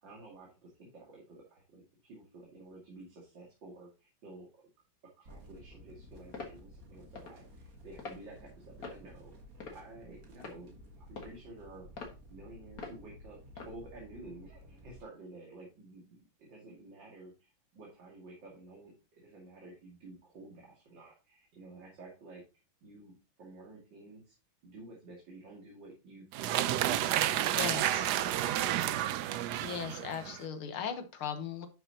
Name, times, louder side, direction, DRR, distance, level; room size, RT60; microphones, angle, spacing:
voice 1, 0.0-4.6 5.2-9.3 9.7-22.4 22.8-24.4 24.6-26.8 27.2-29.5, right 2 dB, 60° right, -3 dB, 2.9 m, -52 dB
sound 1, 5.3-15.0, equal, 45° right, 1.9 m, -54 dB
sound 2, 6.3-6.6 7.2-7.4 8.0-8.2 8.8-9.1 9.6-10.0 10.4-10.6 11.2-11.4 12.0-12.2 12.8-13.0 13.6-13.7, left 4 dB, 45° left, 1.8 m, -44 dB
sound 3, 26.3-30.4, right 12 dB, 80° right, 0.9 m, -31 dB
voice 2, 27.6-28.1 29.6-31.7, left 7 dB, 80° left, 7 dB, 2.0 m, -38 dB
11.0 x 6.1 x 2.8 m, 0.30 s
omnidirectional pair, 2.3 m